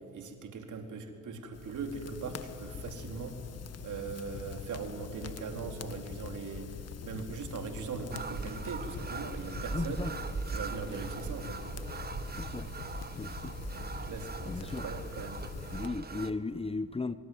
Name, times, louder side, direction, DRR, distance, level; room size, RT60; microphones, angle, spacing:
voice 1, 0.1-3.4 3.8-6.8 7.0-10.0 10.5-11.6 14.1-15.4, right 5 dB, 60° right, 4.1 m, -40 dB
sound 1, 1.5-15.9, left 7 dB, 45° left, 1.7 m, -44 dB
sound 2, 8.1-16.3, right 4 dB, 30° right, 1.4 m, -40 dB
voice 2, 9.7-10.1 12.4-12.7 13.2-13.5 14.5-14.9 15.7-17.2, left 3 dB, 15° left, 0.9 m, -36 dB
25.0 x 25.0 x 9.6 m
supercardioid pair, 65°, 34 cm